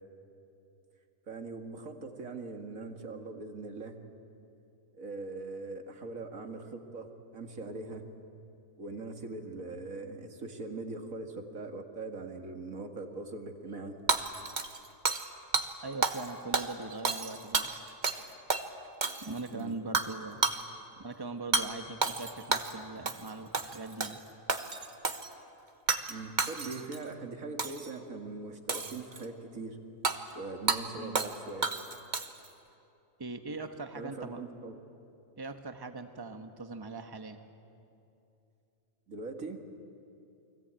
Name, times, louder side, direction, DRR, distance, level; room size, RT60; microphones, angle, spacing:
voice 1, 1.3-4.0 5.0-8.0 8.8-13.9 19.5-19.7 26.1-29.8 30.3-31.7 33.9-34.8 39.1-39.6, right 3 dB, 85° right, 4 dB, 2.5 m, -41 dB
Hammer / Shatter, 14.1-15.3 15.5-15.7 16.0-16.3 16.5-18.2 18.5-18.6 19.0-19.5 19.9-20.1 20.4-20.6 21.5-21.7 22.0-22.7 23.1-23.3 23.5-24.2 24.5-25.3 25.9-26.1 26.4-27.0 27.6-27.9 28.7-29.2 30.0-30.2 30.7-30.8 31.1-31.4 31.6-32.5, right 4 dB, 35° right, 1.3 m, -30 dB
voice 2, 15.8-18.4 19.2-20.4 21.0-24.2 31.0-31.2 33.2-34.4 35.3-37.4, right 3 dB, 20° right, 7 dB, 1.3 m, -41 dB
29.0 x 22.5 x 9.0 m, 2.7 s
omnidirectional pair, 1.4 m